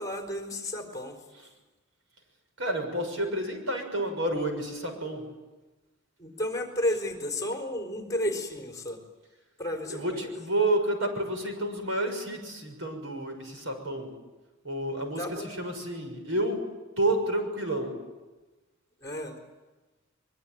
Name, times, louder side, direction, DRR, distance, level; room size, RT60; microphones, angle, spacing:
voice 1, 0.0-1.2 6.2-9.0 9.6-10.2 15.2-15.6 19.0-19.4, left 1 dB, 20° left, 3 dB, 4.2 m, -32 dB
voice 2, 2.6-5.3 9.9-14.1 14.6-16.6 17.0-17.9, right 1 dB, 75° right, 5 dB, 6.6 m, -30 dB
24.0 x 23.0 x 9.3 m, 1.2 s
head